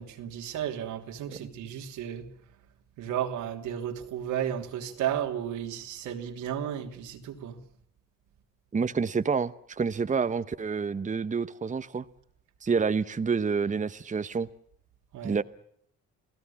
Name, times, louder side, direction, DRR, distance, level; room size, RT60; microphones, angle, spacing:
voice 1, 0.0-2.3 3.0-7.6 15.1-15.4, right 10 dB, 90° right, 3.3 m, -33 dB
voice 2, 8.7-12.0 12.6-14.5 15.2-15.4, right 5 dB, 25° right, 0.9 m, -28 dB
29.5 x 18.0 x 7.1 m
cardioid pair, 90°, 30 cm